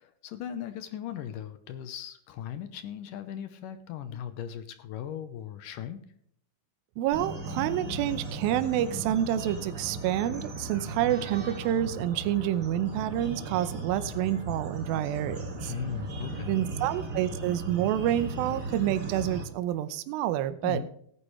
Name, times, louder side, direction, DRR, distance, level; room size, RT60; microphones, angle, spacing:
voice 1, 0.0-6.0 15.7-16.6 20.6-20.9, left 9 dB, 75° left, 10 dB, 2.3 m, -38 dB
voice 2, 7.0-15.7 16.5-20.8, right 12 dB, 80° right, 12 dB, 2.5 m, -28 dB
sound 1, 7.1-19.4, right 2 dB, 30° right, 1.7 m, -37 dB
17.5 x 9.9 x 3.2 m, 0.65 s
omnidirectional pair, 4.2 m